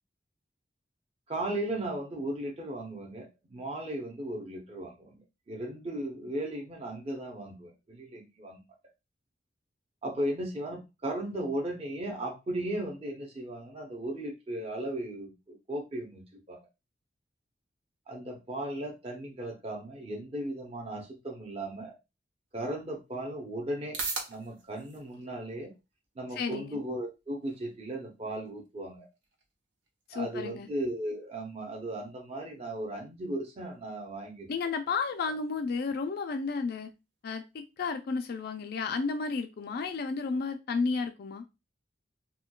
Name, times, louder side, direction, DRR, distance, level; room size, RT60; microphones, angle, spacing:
voice 1, 1.3-8.6 10.0-16.7 18.1-21.9 22.5-24.0 24.3-25.7 26.2-29.1 30.1-34.5, right 1 dB, 35° right, 0 dB, 0.7 m, -36 dB
sound 1, 22.5-39.4, right 4 dB, 85° right, 0.9 m, -48 dB
voice 2, 26.4-26.8 30.1-30.7 34.5-36.9 37.2-41.4, left 4 dB, 60° left, 6 dB, 0.4 m, -32 dB
4.3 x 2.2 x 2.2 m, 0.25 s
head